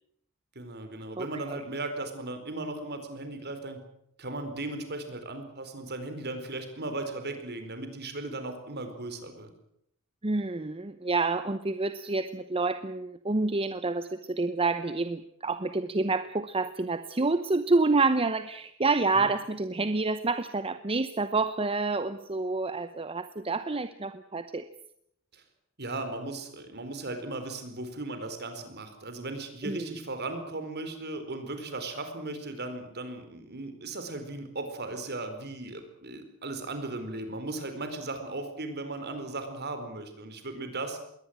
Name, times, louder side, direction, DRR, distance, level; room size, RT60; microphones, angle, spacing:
voice 1, 0.5-3.8 4.2-9.5 19.1-19.3 25.3-25.4 25.8-41.0, right 2 dB, 50° right, 8 dB, 4.6 m, -37 dB
voice 2, 1.2-1.6 10.2-24.7 29.6-29.8, right 3 dB, 25° right, 11 dB, 0.9 m, -28 dB
21.5 x 18.0 x 8.9 m, 0.74 s
head